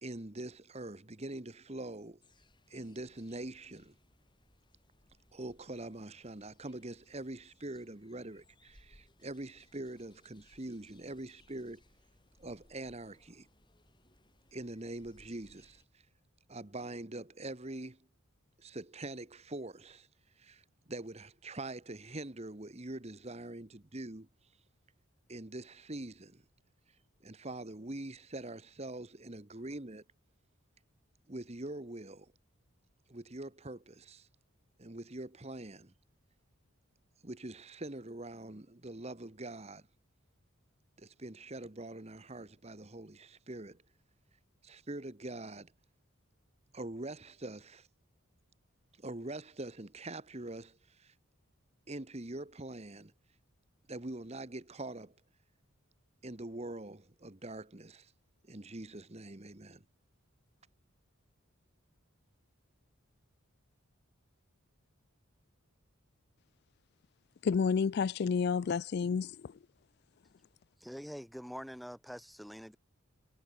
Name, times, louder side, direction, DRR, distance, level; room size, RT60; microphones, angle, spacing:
voice 1, 0.0-2.2 2.7-4.0 5.3-11.8 12.4-13.5 14.5-15.8 16.5-18.0 18.6-20.1 20.4-24.3 25.3-26.4 27.2-30.0 31.3-32.3 33.1-34.3 34.8-35.9 37.2-39.9 41.0-43.8 44.6-45.7 46.7-47.9 49.0-51.1 51.9-53.1 53.9-55.1 56.2-58.1 58.5-59.8, right 2 dB, 30° right, 1.2 m, -44 dB
sound 1, 2.2-15.9, left 1 dB, 20° left, 7.1 m, -66 dB
voice 2, 67.4-69.5, left 5 dB, 50° left, 0.3 m, -30 dB
voice 3, 70.8-72.8, equal, ahead, 1.5 m, -45 dB
head